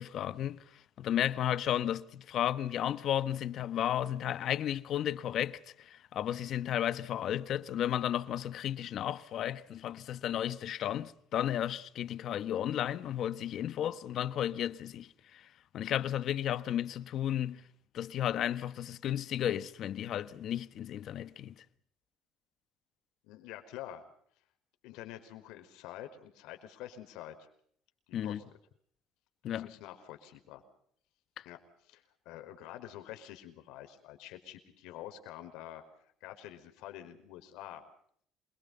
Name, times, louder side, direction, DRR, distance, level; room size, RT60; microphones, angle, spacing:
voice 1, 0.0-15.5 15.7-17.6 17.9-21.6 28.1-28.4 29.4-29.7 31.4-31.5, left 11 dB, 40° left, 1.3 m, -33 dB
voice 2, 23.2-24.0 24.8-27.5 28.1-28.4 29.4-30.6 31.4-31.6 31.9-35.8 36.2-37.8, left 12 dB, 75° left, 5.1 m, -47 dB
27.5 x 23.5 x 5.6 m
cardioid pair, 170°, 0 cm